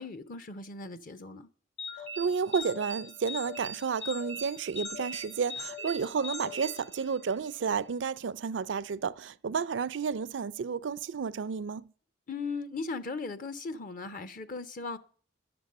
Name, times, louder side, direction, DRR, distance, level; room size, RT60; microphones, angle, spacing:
voice 1, 0.0-1.5 12.3-15.0, left 4 dB, 50° left, 0.6 m, -38 dB
sound 1, 1.8-7.5, left 1 dB, 65° left, 2.3 m, -41 dB
voice 2, 2.0-11.9, right 6 dB, 80° right, 0.4 m, -31 dB
11.0 x 6.9 x 6.6 m
head